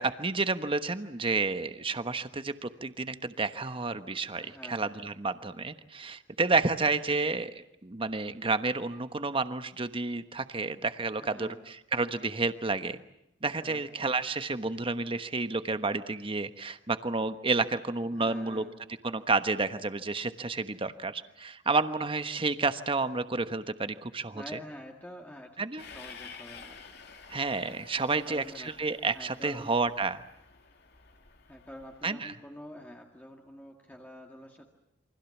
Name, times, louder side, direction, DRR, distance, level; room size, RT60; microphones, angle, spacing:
voice 1, 0.0-13.0 13.4-18.6 19.0-24.6 25.6-25.8 27.3-30.2 32.0-32.3, right 3 dB, 30° right, 10 dB, 1.2 m, -30 dB
voice 2, 4.4-4.8 11.2-11.6 13.4-13.9 18.1-18.8 24.3-26.8 28.2-28.8 29.1-29.8 31.5-34.7, left 1 dB, 10° left, 1 dB, 2.1 m, -47 dB
Train, 25.8-32.1, left 5 dB, 60° left, 2.7 m, -51 dB
29.0 x 24.5 x 7.3 m, 0.83 s
head